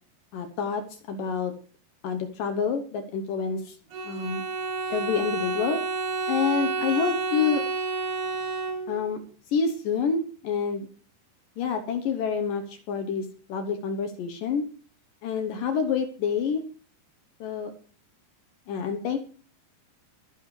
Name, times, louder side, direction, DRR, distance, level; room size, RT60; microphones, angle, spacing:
voice 1, 0.3-1.5 2.0-3.6 4.0-4.4 4.9-5.8 6.3-7.6 8.9-9.2 9.5-10.9 11.6-14.6 15.2-16.6 17.4-17.7 18.7-19.2, left 6 dB, 70° left, 6 dB, 2.1 m, -28 dB
Bowed string instrument, 3.9-9.2, right 4 dB, 60° right, 4.2 m, -30 dB
23.0 x 10.0 x 3.2 m, 0.42 s
omnidirectional pair, 5.1 m